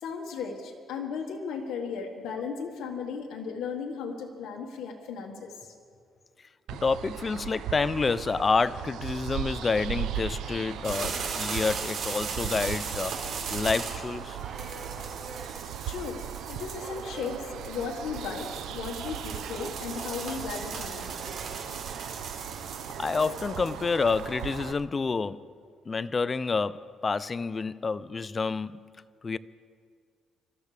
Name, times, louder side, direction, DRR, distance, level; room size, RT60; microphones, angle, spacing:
voice 1, 0.0-5.5 15.9-16.2 16.5-21.1, left 5 dB, 85° left, 1.6 m, -36 dB
sound 1, 6.7-24.7, right 9 dB, 85° right, 0.6 m, -38 dB
voice 2, 6.8-13.1 13.5-14.4 23.0-25.5 25.9-28.9 29.2-29.4, left 4 dB, 30° left, 0.4 m, -28 dB
sound 2, 9.5-21.6, right 3 dB, 50° right, 3.2 m, -47 dB
sound 3, 10.8-24.5, right 5 dB, 65° right, 4.0 m, -38 dB
26.5 x 13.5 x 3.4 m
cardioid pair, 105°, 0 cm